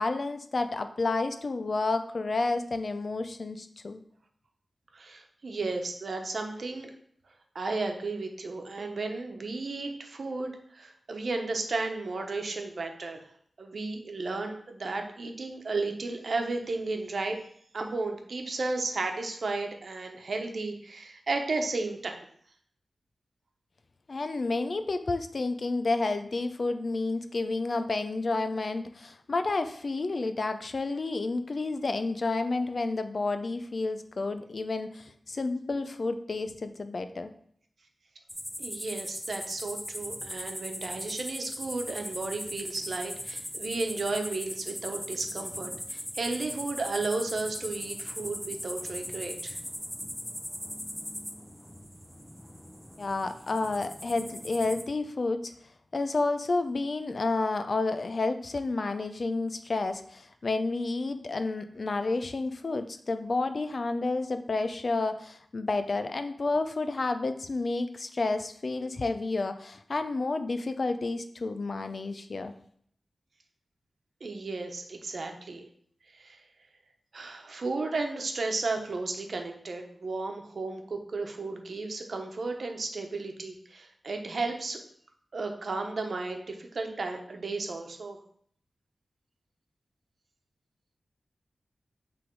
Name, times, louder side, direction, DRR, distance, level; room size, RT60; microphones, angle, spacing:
voice 1, 0.0-4.0 24.1-37.3 53.0-55.5 55.9-72.5, left 3 dB, 55° left, 9 dB, 0.5 m, -30 dB
voice 2, 4.9-6.9 7.5-13.3 13.6-17.4 17.7-22.2 38.6-49.6 74.2-75.7 76.1-76.4 77.1-84.8 85.3-88.2, right 3 dB, 70° right, 4 dB, 1.0 m, -34 dB
sound 1, 38.3-54.8, equal, 5° left, 0.7 m, -39 dB
8.1 x 3.4 x 4.6 m, 0.62 s
wide cardioid pair, 80°, 0 cm